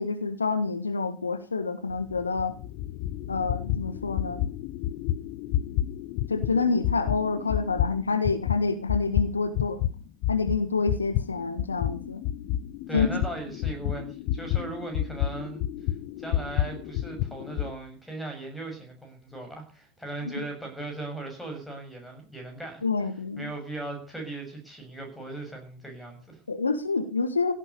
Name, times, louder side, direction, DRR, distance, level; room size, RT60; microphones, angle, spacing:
voice 1, 0.0-2.5 3.3-4.4 6.3-9.8 10.3-12.2 12.9-13.2 20.2-20.3 22.8-23.5 26.5-27.5, left 4 dB, 75° left, 10 dB, 1.6 m, -27 dB
sound 1, 1.9-9.9 10.2-17.7, left 12 dB, 45° left, 0.9 m, -30 dB
voice 2, 12.9-15.6 15.9-26.4, right 2 dB, ahead, 3 dB, 7.1 m, -38 dB
16.5 x 9.4 x 6.8 m, 0.38 s
figure-of-eight pair, 90°, 0 cm